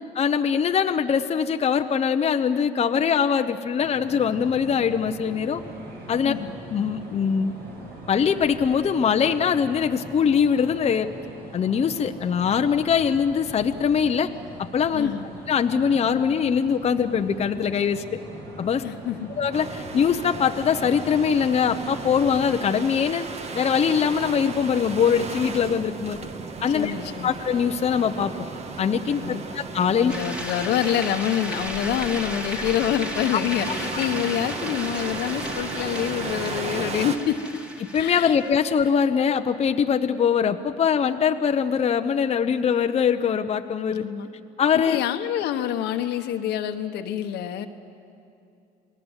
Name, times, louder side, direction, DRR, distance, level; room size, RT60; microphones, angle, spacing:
voice 1, 0.2-5.6 6.1-6.3 6.7-7.5 8.1-11.1 11.5-14.3 14.6-15.1 15.5-18.0 18.6-18.8 19.4-23.3 23.5-26.2 26.6-26.9 27.2-28.3 28.8-30.1 33.9-34.0 37.9-44.0 44.6-45.0, left 7 dB, 40° left, 7 dB, 0.9 m, -22 dB
sound 1, 3.8-22.5, right 1 dB, 70° right, 6.7 m, -41 dB
voice 2, 6.2-6.6 14.9-15.3 18.8-19.3 26.7-27.3 29.1-29.4 30.0-37.4 38.0-38.6 43.9-44.3 44.9-47.7, left 10 dB, 80° left, 6 dB, 1.4 m, -27 dB
sound 2, 19.5-37.2, right 4 dB, 40° right, 1.7 m, -35 dB
sound 3, 30.1-38.6, equal, 5° right, 2.2 m, -35 dB
29.0 x 20.0 x 8.3 m, 2.6 s
cardioid pair, 110°, 17 cm